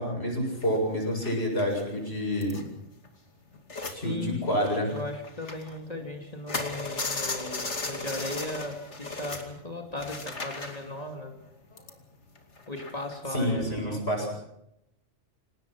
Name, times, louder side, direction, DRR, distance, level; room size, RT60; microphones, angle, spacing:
voice 1, 0.0-2.6 3.9-4.9 13.3-14.3, equal, 60° left, 1 dB, 7.9 m, -28 dB
sound 1, 0.6-4.0 4.3-6.0 6.3-13.3, left 3 dB, 80° left, 2.9 m, -37 dB
voice 2, 4.0-4.5 4.9-11.3 12.7-14.0, left 2 dB, 35° left, 2 dB, 2.7 m, -37 dB
27.5 x 18.5 x 6.0 m, 0.82 s
omnidirectional pair, 1.2 m